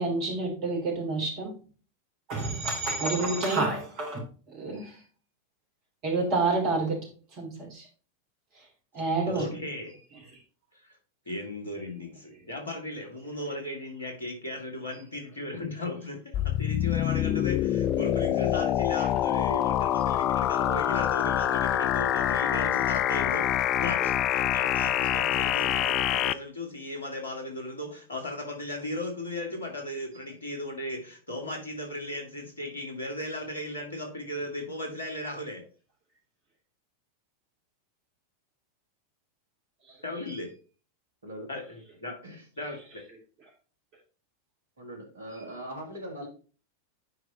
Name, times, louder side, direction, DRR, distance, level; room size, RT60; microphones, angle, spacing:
voice 1, 0.0-1.5 2.3-5.0 6.0-7.1 7.4-7.9 8.9-9.5 24.0-24.1 39.9-40.0 45.3-45.4, right 3 dB, 40° right, 0 dB, 3.3 m, -29 dB
voice 2, 9.3-9.9 10.8-11.0 11.3-35.6 40.0-40.5 41.5-42.1 42.6-42.8, left 1 dB, 70° left, 2 dB, 2.2 m, -36 dB
sound 1, 16.3-26.3, left 12 dB, 35° left, 0.3 m, -26 dB
voice 3, 44.8-46.3, right 1 dB, 70° right, 3 dB, 2.0 m, -40 dB
9.4 x 4.7 x 3.0 m, 0.38 s
figure-of-eight pair, 90°, 0 cm